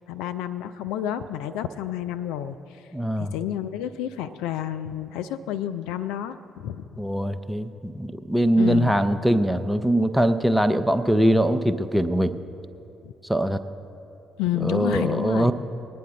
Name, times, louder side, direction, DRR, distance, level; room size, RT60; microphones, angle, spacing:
voice 1, 0.1-2.8 3.2-6.8 8.6-8.9 13.0-13.1 14.4-15.5, left 11 dB, 65° left, 10 dB, 0.3 m, -30 dB
voice 2, 2.9-3.3 7.0-12.4 13.3-13.6 14.6-15.5, right 1 dB, 5° right, 10 dB, 0.6 m, -22 dB
20.0 x 9.4 x 3.9 m, 2.8 s
figure-of-eight pair, 45°, 0 cm